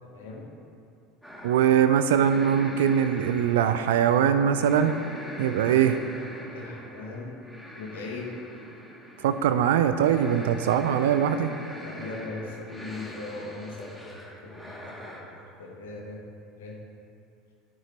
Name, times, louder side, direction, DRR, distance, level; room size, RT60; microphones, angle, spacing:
voice 1, 0.0-0.5 6.5-7.3 7.8-8.4 11.8-16.2 16.6-16.8, left 3 dB, 70° left, -1 dB, 1.6 m, -39 dB
sound 1, 1.2-15.2, equal, ahead, 2.4 m, -43 dB
voice 2, 1.4-5.0 5.4-6.0 9.2-11.5, right 9 dB, 65° right, 10 dB, 0.4 m, -22 dB
14.0 x 9.7 x 3.0 m, 2.6 s
figure-of-eight pair, 70°, 0 cm